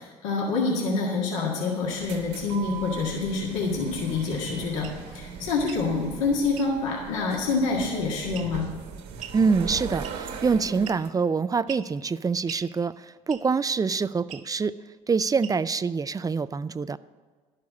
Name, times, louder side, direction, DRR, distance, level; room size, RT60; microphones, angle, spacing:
voice 1, 0.0-8.7, left 4 dB, 85° left, -2 dB, 1.8 m, -27 dB
sound 1, 1.8-11.1, right 6 dB, 75° right, 1.5 m, -39 dB
sound 2, 4.8-5.0 5.6-5.9 6.5-6.7 8.3-8.7 9.2-9.4 10.0-10.4 10.8-11.2 11.7-11.9 12.5-12.7 13.3-13.6 14.3-14.5 15.4-15.8, right 9 dB, 50° right, 1.6 m, -42 dB
voice 2, 9.3-14.7 15.1-17.0, right 5 dB, 20° right, 15 dB, 0.4 m, -25 dB
11.5 x 6.5 x 8.5 m, 1.5 s
hypercardioid pair, 70°, 16 cm